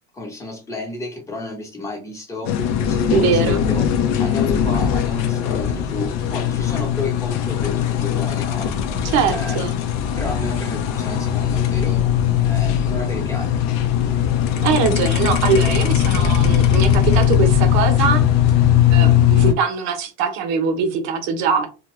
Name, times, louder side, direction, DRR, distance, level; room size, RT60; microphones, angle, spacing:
voice 1, 0.1-2.6 2.9-3.9 4.2-8.7 9.3-9.7 10.2-12.1 12.4-13.6 18.9-19.2, left 3 dB, 10° left, 0.9 m, -31 dB
sound 1, 2.4-19.5, left 9 dB, 60° left, 0.6 m, -19 dB
voice 2, 3.1-3.6 9.0-9.7 14.6-18.2 18.9-21.7, right 6 dB, 65° right, 0.8 m, -21 dB
2.5 x 2.2 x 3.0 m
supercardioid pair, 125°, 30 cm